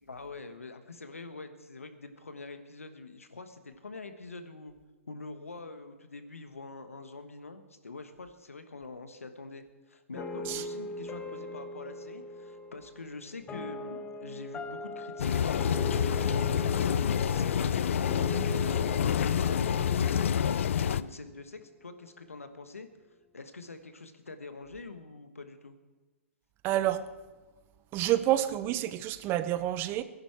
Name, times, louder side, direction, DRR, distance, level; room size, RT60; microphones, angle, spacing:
voice 1, 0.0-4.7 5.1-17.0 17.3-22.9 23.3-25.8, left 3 dB, 90° left, 9 dB, 1.2 m, -45 dB
sound 1, 10.1-21.3, left 1 dB, 20° left, 1.1 m, -41 dB
sound 2, 15.2-21.0, left 8 dB, 70° left, 0.4 m, -27 dB
voice 2, 26.6-27.0 27.9-30.0, right 13 dB, 30° right, 13 dB, 0.7 m, -28 dB
18.0 x 10.5 x 4.7 m, 1.2 s
hypercardioid pair, 120°, 7 cm